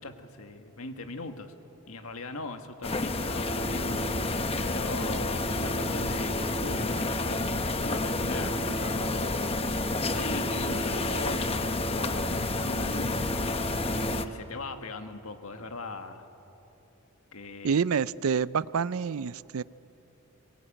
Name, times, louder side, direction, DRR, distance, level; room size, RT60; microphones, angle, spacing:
voice 1, 0.0-1.5 1.9-4.0 4.6-7.4 7.8-9.5 10.1-13.6 14.2-16.3 17.3-17.8, left 3 dB, 70° left, 1.7 m, -39 dB
sound 1, 2.8-14.2, left 2 dB, 25° left, 0.9 m, -29 dB
voice 2, 17.6-19.6, right 6 dB, 70° right, 0.4 m, -27 dB
23.0 x 21.0 x 8.8 m
head